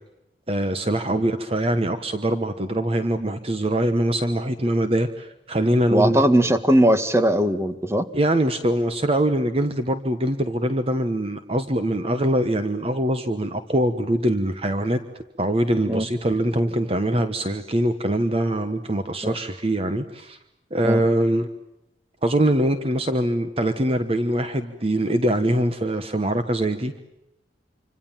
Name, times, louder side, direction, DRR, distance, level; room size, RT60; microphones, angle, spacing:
voice 1, 0.5-6.2 8.1-15.0 15.4-20.4 20.7-21.5 22.2-27.0, right 1 dB, 30° right, 9 dB, 1.2 m, -23 dB
voice 2, 5.9-8.1 15.9-16.0 19.2-19.3 20.8-21.0, right 1 dB, 15° right, 10 dB, 1.6 m, -19 dB
27.5 x 26.0 x 7.4 m, 0.93 s
head